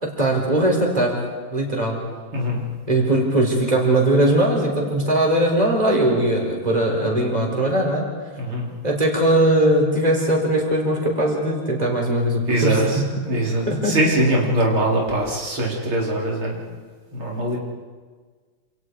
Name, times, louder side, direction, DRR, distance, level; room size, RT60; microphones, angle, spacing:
voice 1, 0.0-1.1 1.5-2.0 2.9-8.0 8.8-13.2 13.7-14.0, right 1 dB, 20° right, 0 dB, 4.5 m, -20 dB
voice 2, 2.3-2.6 8.4-8.7 12.5-16.6 17.1-17.6, right 1 dB, 90° right, -3 dB, 4.8 m, -22 dB
28.0 x 27.5 x 4.8 m, 1.5 s
omnidirectional pair, 2.2 m